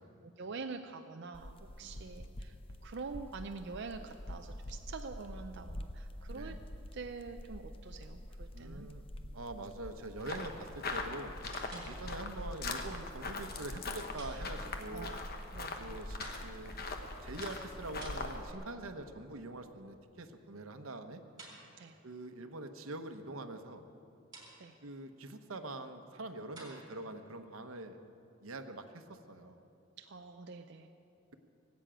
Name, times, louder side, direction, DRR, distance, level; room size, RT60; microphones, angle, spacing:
voice 1, 0.2-2.5 2.8-6.6 6.9-8.9 11.7-11.9 14.9-15.2 15.5-16.0 21.8-22.0 24.6-24.8 30.0-30.9, right 4 dB, 55° right, 5 dB, 0.5 m, -45 dB
sound 1, 1.3-18.5, equal, 25° left, 0.7 m, -47 dB
voice 2, 1.8-2.3 6.3-6.6 8.5-9.1 9.3-11.3 11.8-15.2 15.8-16.7 17.2-21.2 22.0-23.8 24.8-28.0 28.4-29.6, right 2 dB, 85° right, 7 dB, 1.0 m, -44 dB
sound 2, 10.2-18.4, left 3 dB, 50° left, 1.2 m, -42 dB
sound 3, 10.6-10.9 11.5-12.4 14.2-15.0 16.2-16.8 17.4-18.8 21.4-22.1 24.3-24.9 26.6-27.1, right 2 dB, 20° right, 4.0 m, -53 dB
19.0 x 8.2 x 8.9 m, 2.9 s
head